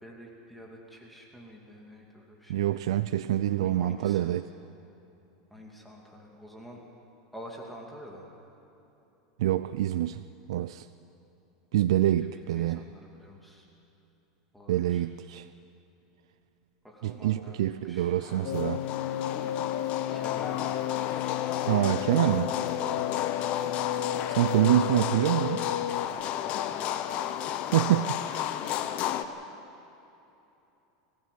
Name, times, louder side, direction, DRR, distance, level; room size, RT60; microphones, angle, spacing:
voice 1, 0.0-2.9 3.5-4.3 5.5-6.8 7.3-8.3 12.0-13.7 14.5-15.1 16.8-18.1 20.1-21.2 26.4-27.0, equal, 5° left, -1 dB, 2.5 m, -48 dB
voice 2, 2.5-4.5 9.4-10.2 10.5-10.9 11.7-12.8 14.7-15.5 17.0-18.9 21.7-22.6 24.3-25.7 27.7-28.6, right 13 dB, 85° right, 12 dB, 0.5 m, -26 dB
sound 1, 18.2-29.3, left 11 dB, 45° left, 1.0 m, -32 dB
sound 2, 18.4-26.1, left 12 dB, 80° left, 1.0 m, -33 dB
23.0 x 15.0 x 8.4 m, 3.0 s
supercardioid pair, 140°, 3 cm